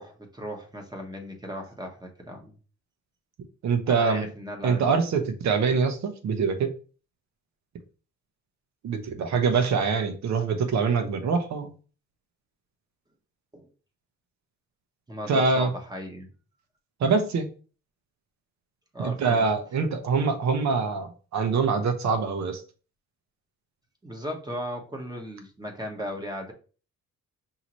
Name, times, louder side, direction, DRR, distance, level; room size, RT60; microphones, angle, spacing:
voice 1, 0.0-2.5 3.9-4.9 13.5-13.7 15.1-16.3 18.9-19.4 24.0-26.5, equal, 15° right, 3 dB, 1.2 m, -36 dB
voice 2, 3.6-4.3 4.6-6.7 8.8-11.7 15.3-15.7 17.0-17.5 19.0-22.6, right 5 dB, 65° right, 7 dB, 1.0 m, -24 dB
5.6 x 2.8 x 3.1 m, 0.37 s
cardioid pair, 90°, 30 cm